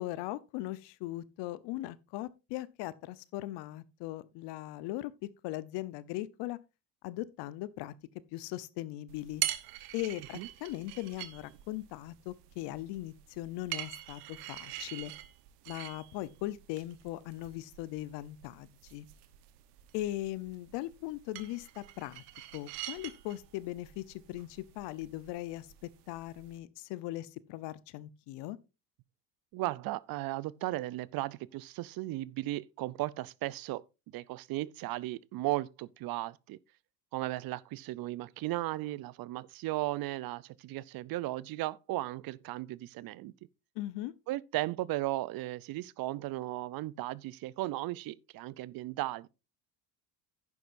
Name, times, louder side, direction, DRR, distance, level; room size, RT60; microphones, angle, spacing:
voice 1, 0.0-5.1 5.4-6.6 7.0-7.9 8.3-9.4 9.9-15.1 15.7-19.1 19.9-22.2 22.5-28.6 43.8-44.1, left 16 dB, 65° left, 0.9 m, -39 dB
sound 1, 9.1-26.6, right 15 dB, 85° right, 1.2 m, -44 dB
voice 2, 29.5-33.8 34.1-36.6 37.1-43.3 44.3-49.3, right 17 dB, 50° right, 0.6 m, -36 dB
11.0 x 9.5 x 2.6 m
supercardioid pair, 90°, 46 cm